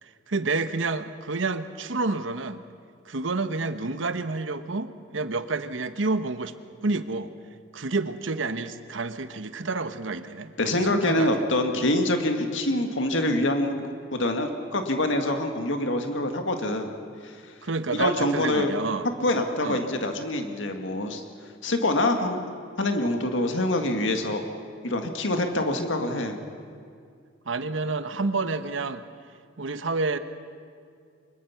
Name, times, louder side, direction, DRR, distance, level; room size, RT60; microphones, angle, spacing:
voice 1, 0.0-2.6 3.0-6.5 6.8-7.3 7.7-11.5 17.6-19.1 19.6-19.8 27.5-29.0 29.6-30.2, right 3 dB, 85° right, 11 dB, 1.1 m, -29 dB
voice 2, 10.6-13.8 14.1-16.9 17.2-17.3 17.9-18.7 19.2-21.2 21.6-22.4 22.8-24.4 24.8-26.4, left 1 dB, 75° left, 5 dB, 2.0 m, -25 dB
24.5 x 22.0 x 5.8 m, 2.3 s
head